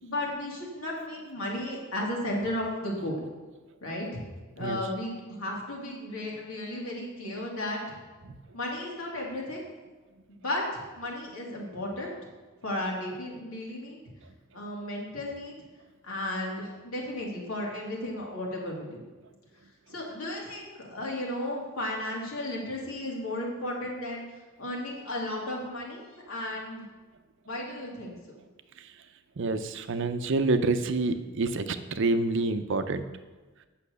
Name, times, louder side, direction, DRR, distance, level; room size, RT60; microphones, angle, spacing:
voice 1, 0.0-3.2 3.8-4.2 4.6-8.0 8.5-9.6 10.3-10.6 11.0-12.1 12.6-14.0 14.5-15.6 16.0-19.0 19.9-24.2 24.6-26.8 27.5-28.4, left 1 dB, 85° left, -2 dB, 2.5 m, -34 dB
voice 2, 29.4-33.0, right 3 dB, 65° right, 10 dB, 0.6 m, -27 dB
8.5 x 5.8 x 6.7 m, 1.2 s
head